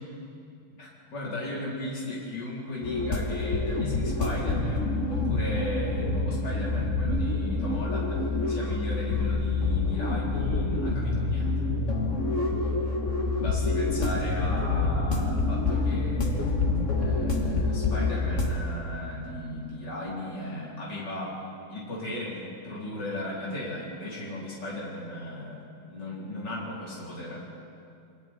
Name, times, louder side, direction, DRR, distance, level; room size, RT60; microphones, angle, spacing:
voice 1, 0.8-11.7 13.4-16.5 17.0-21.4 21.7-27.6, left 1 dB, 55° left, -6 dB, 4.9 m, -36 dB
sound 1, 2.8-18.6, left 3 dB, 35° left, 2.0 m, -27 dB
28.0 x 25.0 x 4.5 m, 2.5 s
omnidirectional pair, 2.3 m